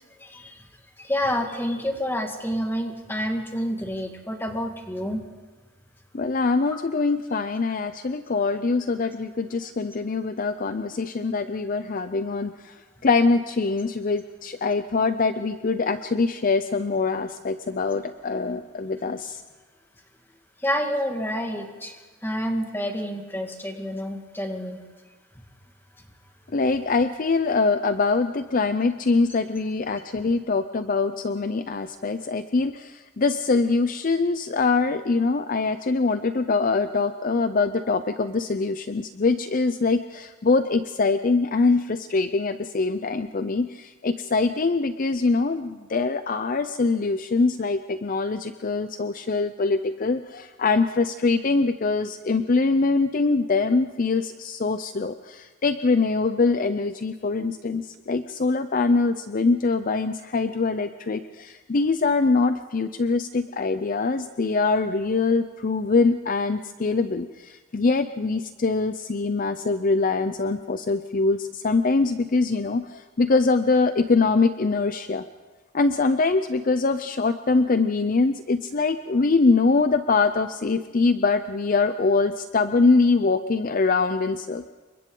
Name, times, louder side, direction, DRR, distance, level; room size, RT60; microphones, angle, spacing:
voice 1, 0.2-0.5 1.0-5.2 20.6-21.9 22.2-24.8, equal, 10° left, 3 dB, 1.9 m, -28 dB
voice 2, 6.1-12.7 13.0-19.4 26.5-75.2 75.7-84.7, left 3 dB, 40° left, 10 dB, 0.5 m, -23 dB
28.5 x 23.5 x 3.9 m, 1.3 s
head